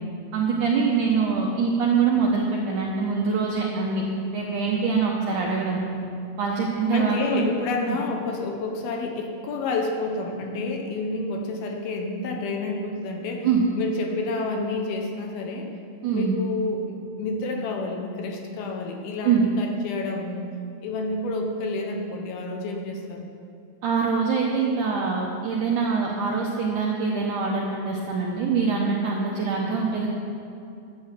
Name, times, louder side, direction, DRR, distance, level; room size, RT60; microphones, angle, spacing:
voice 1, 0.3-4.0 4.3-5.8 6.4-7.5 7.9-8.0 13.4-13.6 16.0-16.3 19.2-19.5 23.8-30.1, right 5 dB, 75° right, -2 dB, 1.9 m, -24 dB
voice 2, 6.9-13.5 13.8-15.7 16.1-20.5 20.8-23.3 29.6-29.8, left 3 dB, 70° left, 2 dB, 2.7 m, -29 dB
13.0 x 8.7 x 7.6 m, 2.6 s
omnidirectional pair, 4.9 m